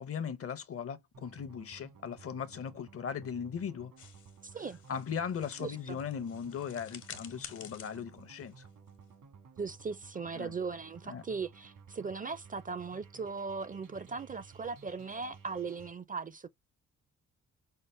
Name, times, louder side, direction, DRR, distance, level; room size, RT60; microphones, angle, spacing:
voice 1, 0.0-3.9 4.9-8.7 10.4-10.5 11.1-11.2, left 7 dB, 45° left, 0.7 m, -38 dB
sound 1, 1.1-15.9, right 5 dB, 80° right, 1.5 m, -56 dB
sound 2, 4.0-9.3, left 8 dB, 70° left, 1.1 m, -51 dB
voice 2, 4.4-4.8 5.6-6.0 9.6-16.5, right 4 dB, 25° right, 0.4 m, -38 dB
5.5 x 2.1 x 3.1 m
cardioid pair, 80°, 31 cm